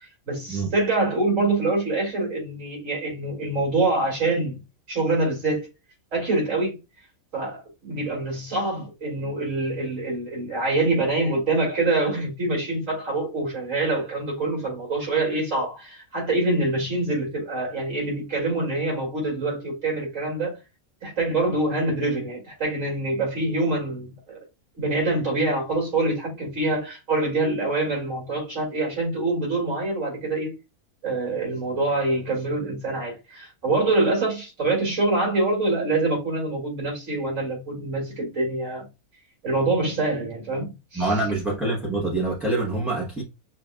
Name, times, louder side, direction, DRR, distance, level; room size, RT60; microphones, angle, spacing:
voice 1, 0.3-4.6 4.9-5.7 6.1-6.8 7.3-20.6 21.0-24.4 24.8-30.5 31.0-38.8 39.4-41.0, right 2 dB, 60° right, 2.4 m, -25 dB
voice 2, 40.9-43.2, right 2 dB, ahead, 0.8 m, -25 dB
6.2 x 2.6 x 2.3 m
omnidirectional pair, 1.5 m